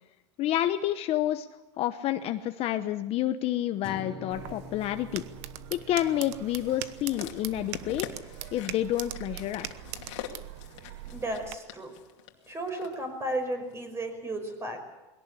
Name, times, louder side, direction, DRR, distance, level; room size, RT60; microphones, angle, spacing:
voice 1, 0.4-1.5 1.8-5.3 5.7-8.1 8.5-9.7, left 12 dB, 40° left, 9 dB, 1.0 m, -29 dB
sound 1, 3.8-8.2, left 1 dB, 5° left, 3.0 m, -48 dB
sound 2, 4.3-11.6, right 14 dB, 70° right, 1.1 m, -41 dB
sound 3, 6.6-13.0 13.7-13.8, left 11 dB, 80° left, 2.6 m, -44 dB
voice 2, 11.1-11.9 12.5-14.9, right 1 dB, 15° right, 6 dB, 5.4 m, -34 dB
22.0 x 17.5 x 8.4 m, 1.0 s
supercardioid pair, 135°, 15 cm